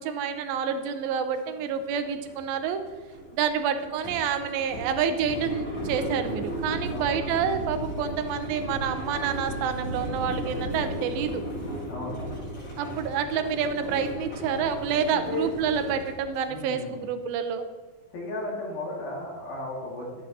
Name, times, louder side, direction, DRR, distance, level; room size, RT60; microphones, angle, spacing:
voice 1, 0.0-2.8 3.3-11.4 12.8-17.7, right 7 dB, 80° right, 8 dB, 2.4 m, -28 dB
sound 1, 1.3-1.4 1.8-16.5, right 1 dB, 45° left, 4.6 m, -35 dB
voice 2, 11.9-12.5 15.1-15.5 16.5-17.0 18.1-20.2, left 2 dB, 65° left, -2 dB, 4.1 m, -35 dB
12.0 x 8.8 x 4.2 m, 1.4 s
omnidirectional pair, 4.6 m